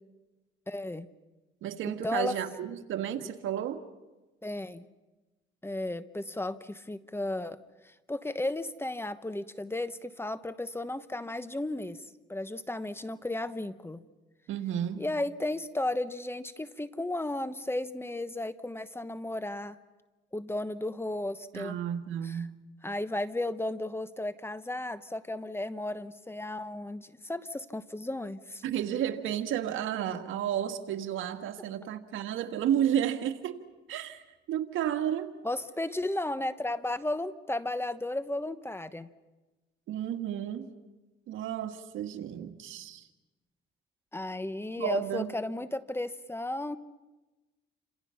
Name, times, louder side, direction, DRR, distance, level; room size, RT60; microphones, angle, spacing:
voice 1, 0.7-1.1 2.0-2.3 4.4-4.8 5.6-7.6 7.8-14.0 15.0-19.8 20.3-21.8 22.2-22.4 22.8-28.6 35.4-39.1 44.1-46.8, left 1 dB, 10° left, 13 dB, 1.1 m, -34 dB
voice 2, 1.6-3.8 14.5-15.0 21.5-22.6 28.6-33.6 33.9-34.2 34.5-35.3 39.9-40.7 41.3-43.1 44.8-45.3, right 10 dB, 85° right, 7 dB, 1.7 m, -32 dB
29.0 x 26.5 x 5.8 m, 1.1 s
cardioid pair, 90°, 20 cm